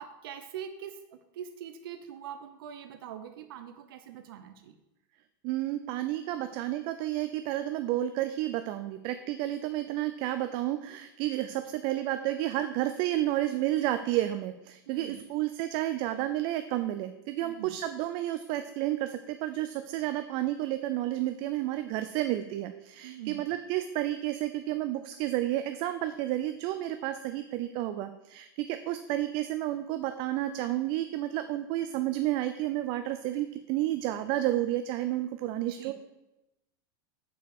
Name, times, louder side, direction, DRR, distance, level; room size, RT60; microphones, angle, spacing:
voice 1, 0.0-4.8 14.9-15.3 17.4-17.8 23.0-23.4 35.7-35.9, right 9 dB, 80° right, 7 dB, 0.7 m, -43 dB
voice 2, 5.4-35.9, right 14 dB, 45° right, 10 dB, 0.4 m, -31 dB
6.7 x 5.1 x 6.0 m, 0.95 s
supercardioid pair, 150°, 12 cm